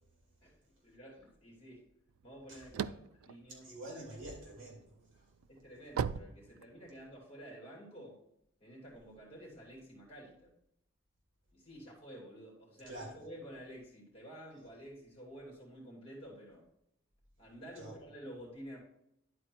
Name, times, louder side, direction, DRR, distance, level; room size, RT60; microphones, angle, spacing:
voice 1, 0.4-1.9 2.2-3.9 5.5-8.2 8.6-10.5 11.5-16.7 17.4-18.8, equal, 25° left, 2.8 m, -51 dB
sound 1, 2.2-4.4 4.9-7.1, right 7 dB, 90° right, 0.3 m, -38 dB
voice 2, 3.5-5.3 12.9-13.2 17.8-18.0, right 1 dB, 65° right, 3.0 m, -47 dB
11.0 x 4.3 x 4.5 m
head